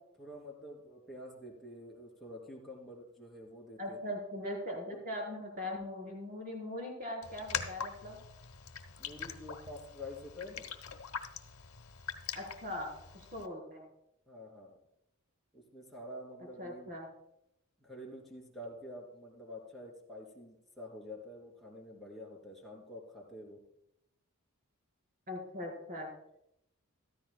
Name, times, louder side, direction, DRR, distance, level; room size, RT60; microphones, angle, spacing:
voice 1, 0.2-4.1 4.9-5.0 9.0-10.7 14.3-14.7 15.5-16.9 17.8-23.7, left 1 dB, ahead, -3 dB, 2.7 m, -48 dB
voice 2, 3.8-8.2 12.3-13.9 16.6-17.1 25.3-26.1, left 1 dB, 40° right, 0 dB, 3.9 m, -40 dB
Raindrop, 7.2-13.5, left 7 dB, 75° left, 0.9 m, -43 dB
14.5 x 13.5 x 2.2 m, 0.79 s
head